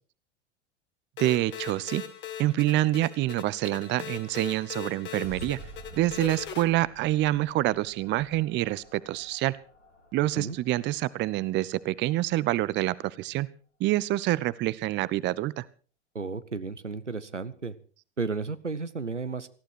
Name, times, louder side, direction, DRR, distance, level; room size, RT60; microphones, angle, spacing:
sound 1, 1.2-6.6, left 9 dB, 30° left, 2.2 m, -40 dB
voice 1, 1.2-2.0 2.4-5.6 5.9-9.6 10.1-13.5 13.8-15.6, right 16 dB, 30° right, 20 dB, 0.7 m, -27 dB
sound 2, 5.2-12.3, right 1 dB, 90° left, 4.5 m, -49 dB
voice 2, 16.1-17.7 18.2-19.5, right 4 dB, 85° right, 13 dB, 1.0 m, -33 dB
19.0 x 15.0 x 4.6 m, 0.41 s
figure-of-eight pair, 80°, 35 cm